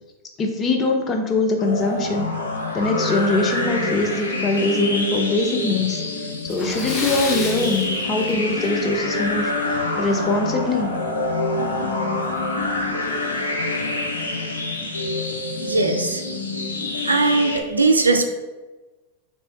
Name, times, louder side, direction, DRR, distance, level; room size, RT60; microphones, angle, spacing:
voice 1, 0.4-2.3 2.7-6.0 6.4-11.0, left 2 dB, 25° left, 3 dB, 0.5 m, -22 dB
sound 1, 1.6-17.6, left 2 dB, 75° left, 0.4 m, -26 dB
Splash splatter, 6.5-8.8 9.1-9.3 9.8-9.9 11.3-11.4 11.7-11.8 12.4-12.7, left 2 dB, 5° left, 1.0 m, -30 dB
voice 2, 15.6-16.2 17.1-18.2, right 3 dB, 80° right, 6 dB, 0.3 m, -19 dB
3.3 x 2.1 x 3.9 m, 1.2 s
figure-of-eight pair, 90°, 0 cm